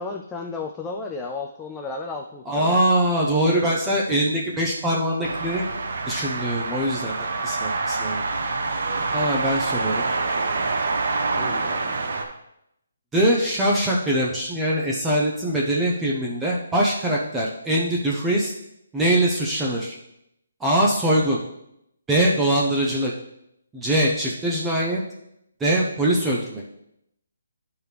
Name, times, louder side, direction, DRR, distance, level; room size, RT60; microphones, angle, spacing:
voice 1, 0.0-2.8 11.4-12.0, left 4 dB, 10° left, 1 dB, 0.4 m, -33 dB
voice 2, 2.5-5.6 6.1-8.2 9.1-10.0 13.1-18.5 18.9-20.0 20.6-21.4 22.1-23.1 23.7-25.0 25.6-26.6, right 1 dB, 10° right, -4 dB, 0.8 m, -22 dB
sound 1, 5.2-12.2, right 3 dB, 65° right, 1.1 m, -26 dB
11.0 x 4.6 x 3.4 m, 0.80 s
hypercardioid pair, 160°, 0 cm